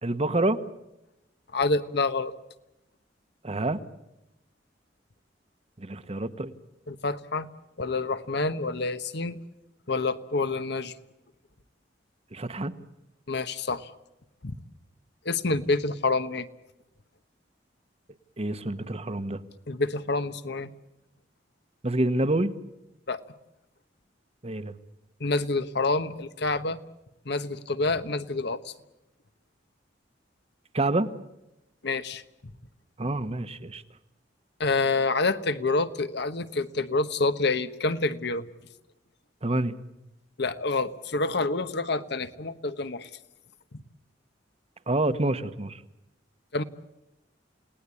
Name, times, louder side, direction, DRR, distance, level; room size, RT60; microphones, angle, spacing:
voice 1, 0.0-0.6 3.4-3.8 5.8-6.5 12.3-12.7 18.4-19.4 21.8-22.5 24.4-24.7 30.7-31.1 33.0-33.8 39.4-39.7 44.9-45.8, right 2 dB, 35° right, 12 dB, 1.2 m, -27 dB
voice 2, 1.5-2.3 6.9-7.5 7.8-9.4 9.9-10.9 13.3-13.9 14.4-14.5 15.2-16.5 19.7-20.7 23.1-23.2 25.2-26.8 27.2-28.7 31.8-32.2 34.6-38.5 40.4-43.1 43.7-43.8 46.5-46.6, left 3 dB, 65° left, 11 dB, 1.2 m, -27 dB
29.5 x 18.5 x 8.5 m, 0.94 s
head